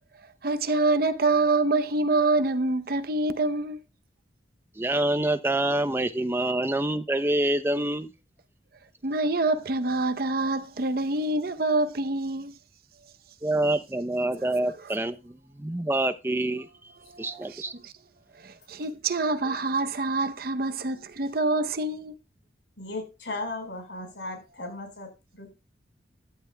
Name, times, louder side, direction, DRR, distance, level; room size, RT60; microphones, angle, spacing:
voice 1, 0.4-3.8 9.0-12.5 17.1-17.9 18.7-22.1, right 2 dB, 55° right, 0.7 m, -26 dB
voice 2, 4.8-8.1 13.4-15.2 15.6-16.7 17.2-17.7, right 1 dB, 15° right, 0.6 m, -26 dB
voice 3, 22.8-25.5, left 2 dB, 85° left, 4.8 m, -36 dB
14.5 x 10.5 x 2.2 m
head